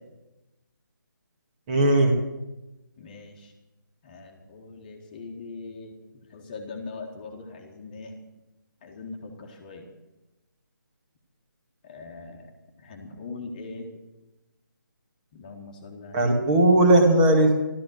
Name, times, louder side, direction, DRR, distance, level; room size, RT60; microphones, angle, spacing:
voice 1, 1.7-2.2 16.1-17.6, right 1 dB, 20° right, 2 dB, 2.1 m, -18 dB
voice 2, 3.0-3.5 4.0-5.9 6.3-8.2 8.8-9.9 11.8-12.5 12.8-13.9 15.3-16.3, left 3 dB, 25° left, 2 dB, 1.8 m, -41 dB
14.0 x 13.0 x 6.6 m, 1.0 s
figure-of-eight pair, 150°, 11 cm